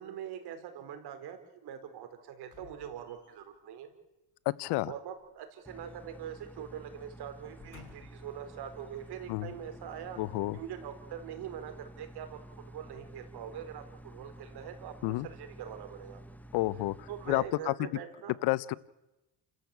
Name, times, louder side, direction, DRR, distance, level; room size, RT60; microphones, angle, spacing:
voice 1, 0.0-3.9 4.8-10.2 10.5-12.4 12.7-14.9 15.2-16.2 17.1-18.3, right 9 dB, 75° right, 6 dB, 4.7 m, -43 dB
sound 1, 2.5-3.6 5.1-6.3 6.6-6.8 7.4-8.3 9.0-9.1, left 5 dB, 50° left, 5.6 m, -56 dB
voice 2, 4.4-4.9 9.3-9.5 10.2-10.6 15.0-15.3 16.5-17.9 18.4-18.7, left 19 dB, 90° left, 20 dB, 0.9 m, -30 dB
sound 2, 5.7-17.5, right 1 dB, 5° left, 1.2 m, -51 dB
29.5 x 14.5 x 8.6 m, 1.0 s
cardioid pair, 105°, 39 cm